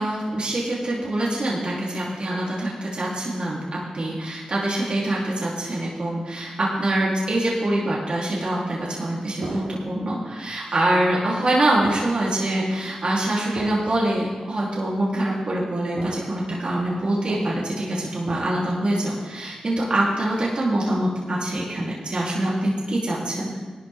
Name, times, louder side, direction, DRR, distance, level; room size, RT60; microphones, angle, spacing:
voice 1, 0.0-23.5, right 1 dB, 50° right, -6 dB, 3.6 m, -24 dB
sound 1, 9.4-10.0 10.7-10.8 11.7-12.3 12.7-12.9 13.5-14.0 14.7-14.8 16.0-16.4 16.8-17.5 18.2-18.7, right 2 dB, 70° right, 2.7 m, -37 dB
17.5 x 12.5 x 3.8 m, 1.3 s
cardioid pair, 60°, 2 cm